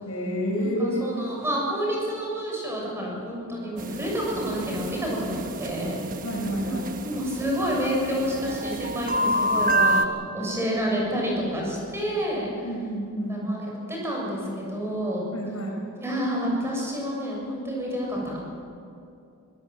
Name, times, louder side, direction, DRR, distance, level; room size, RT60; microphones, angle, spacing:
voice 1, 0.1-1.0 6.2-6.9 12.6-13.5 15.3-15.8, equal, 80° left, 0 dB, 5.6 m, -29 dB
voice 2, 0.6-6.0 6.6-12.5 13.3-15.2 16.0-18.4, equal, 10° right, -3 dB, 7.2 m, -29 dB
sound 1, 3.8-10.1, right 1 dB, 40° right, 1.2 m, -28 dB
24.5 x 18.0 x 7.8 m, 2.5 s
head